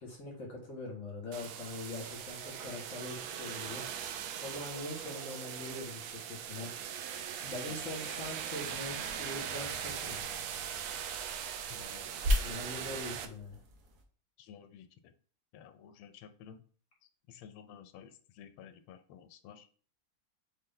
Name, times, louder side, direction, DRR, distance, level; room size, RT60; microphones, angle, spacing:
voice 1, 0.0-3.9 4.4-6.7 7.4-10.3 12.4-13.6, left 2 dB, 40° left, -2 dB, 2.1 m, -42 dB
sound 1, 1.3-13.3, right 8 dB, 85° right, 1.4 m, -40 dB
sound 2, 8.7-14.0, left 1 dB, 65° right, 0.9 m, -38 dB
voice 2, 11.7-12.2 14.4-15.1 15.5-16.6 17.0-19.7, left 8 dB, 85° left, 10 dB, 1.4 m, -53 dB
4.2 x 3.2 x 3.7 m, 0.43 s
omnidirectional pair, 2.3 m